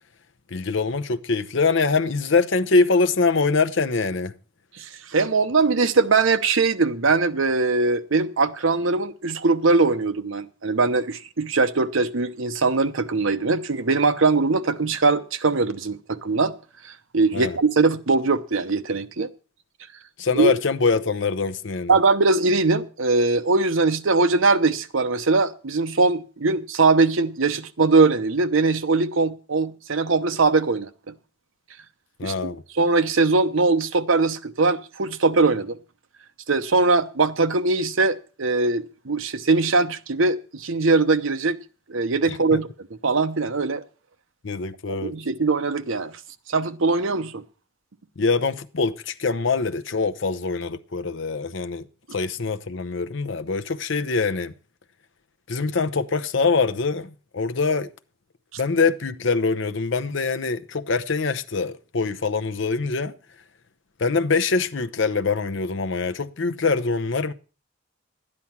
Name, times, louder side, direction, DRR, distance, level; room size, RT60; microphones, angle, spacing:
voice 1, 0.5-4.3 17.3-17.6 20.2-22.0 32.2-32.6 42.3-42.6 44.4-45.1 48.2-51.8 52.1-54.5 55.5-57.9 58.6-63.1 64.0-67.3, left 4 dB, 60° left, 0.7 m, -24 dB
voice 2, 4.8-16.5 16.8-19.3 20.4-20.5 21.9-30.9 32.2-35.8 36.5-41.6 41.9-42.7 43.0-43.8 44.9-46.1 46.5-47.4, right 3 dB, 70° right, 0.9 m, -21 dB
12.0 x 9.9 x 5.8 m
head